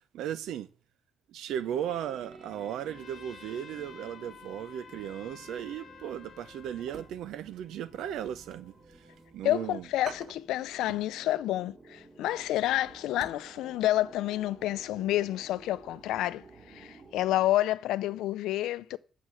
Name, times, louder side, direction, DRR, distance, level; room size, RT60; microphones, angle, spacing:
voice 1, 0.1-0.7 1.3-8.7 9.3-9.9, right 10 dB, 85° right, 0.8 m, -36 dB
sound 1, 1.6-17.5, right 3 dB, 30° right, 3.5 m, -53 dB
Trumpet, 2.9-7.1, left 7 dB, 55° left, 1.0 m, -51 dB
sound 2, 6.8-7.6 7.9-9.3 9.6-9.7 10.0-11.2 11.5-11.7 12.1-13.5 13.8-13.9 14.4-14.6 14.9-15.0, right 6 dB, 55° right, 0.9 m, -48 dB
voice 2, 9.4-19.0, left 14 dB, 90° left, 0.5 m, -29 dB
8.3 x 6.1 x 7.6 m
cardioid pair, 90°, 0 cm